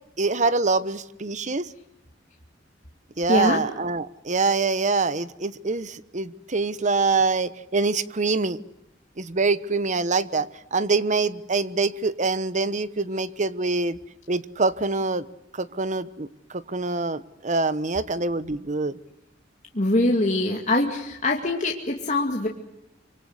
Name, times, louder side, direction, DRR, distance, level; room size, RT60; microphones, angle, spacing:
voice 1, 0.2-1.7 3.2-8.6 9.2-14.0 14.3-15.3 15.5-19.0, right 3 dB, 40° right, 15 dB, 1.1 m, -25 dB
voice 2, 3.3-3.6 19.7-22.5, left 2 dB, 40° left, 0 dB, 2.4 m, -23 dB
25.5 x 25.0 x 8.1 m, 0.85 s
head